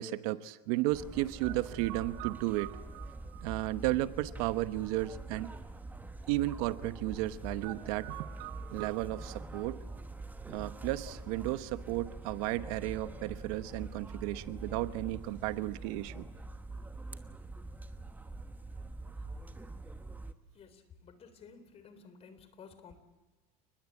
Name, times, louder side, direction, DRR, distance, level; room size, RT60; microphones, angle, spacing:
voice 1, 0.0-5.5 6.3-9.8 10.5-16.2, right 16 dB, 65° right, 13 dB, 1.1 m, -34 dB
sound 1, 0.9-20.3, right 2 dB, 10° right, 1.2 m, -45 dB
voice 2, 20.5-23.0, left 5 dB, 30° left, 11 dB, 3.7 m, -54 dB
29.5 x 20.5 x 8.7 m, 1.2 s
supercardioid pair, 135°, 20 cm